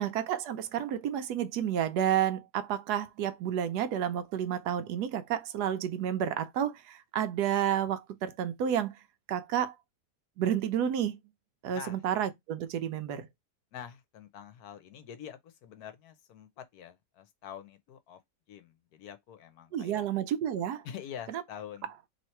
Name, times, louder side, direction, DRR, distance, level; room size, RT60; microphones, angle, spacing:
voice 1, 0.0-9.0 9.3-9.8 10.4-11.2 11.6-13.3 19.7-20.9 21.3-21.4, right 10 dB, 75° right, 1.1 m, -30 dB
voice 2, 13.7-18.2 18.5-20.1 20.8-21.9, left 9 dB, 70° left, 1.2 m, -46 dB
3.1 x 2.8 x 4.4 m
omnidirectional pair, 1.8 m